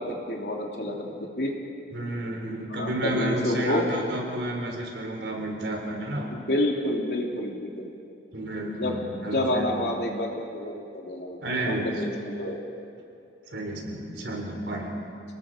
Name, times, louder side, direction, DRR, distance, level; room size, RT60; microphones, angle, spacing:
voice 1, 0.0-1.5 2.7-3.8 6.3-7.9 8.7-9.0 9.3-12.6, left 1 dB, 60° left, 0 dB, 3.0 m, -29 dB
voice 2, 1.9-6.3 8.3-9.7 11.4-12.0 13.5-14.9, right 1 dB, 70° right, 1 dB, 4.2 m, -31 dB
29.5 x 20.0 x 5.1 m, 2.5 s
head